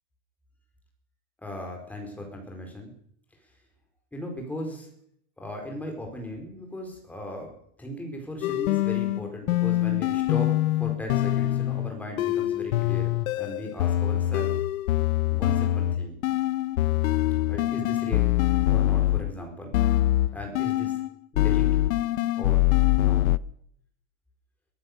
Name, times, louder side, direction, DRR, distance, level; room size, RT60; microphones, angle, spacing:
voice 1, 1.4-2.9 4.1-4.9 5.4-13.1 13.4-14.5 15.3-16.2 17.5-18.3 18.7-19.7 20.3-20.9 21.3-21.7 22.3-22.6 23.0-23.2, left 1 dB, 5° left, 1 dB, 4.7 m, -37 dB
sound 1, 8.4-19.3 19.7-21.1 21.4-23.4, left 15 dB, 70° left, 0.9 m, -24 dB
24.0 x 15.5 x 6.8 m, 0.68 s
supercardioid pair, 170°, 44 cm